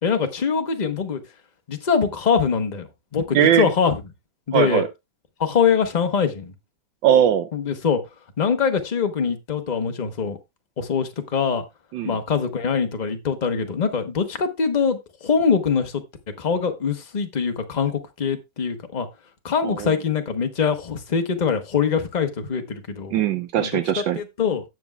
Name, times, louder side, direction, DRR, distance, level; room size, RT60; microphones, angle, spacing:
voice 1, 0.0-1.2 1.7-4.0 4.5-4.8 5.4-6.5 7.5-8.0 8.4-10.4 10.8-11.6 12.0-16.0 16.4-19.1 19.4-23.2 23.6-23.8 24.1-24.6, left 6 dB, 30° left, 0.8 m, -23 dB
voice 2, 3.3-3.7 4.5-4.9 7.0-7.5 11.9-12.2 19.6-19.9 23.1-24.2, right 10 dB, 80° right, 1.3 m, -20 dB
17.0 x 6.1 x 2.3 m
omnidirectional pair, 2.0 m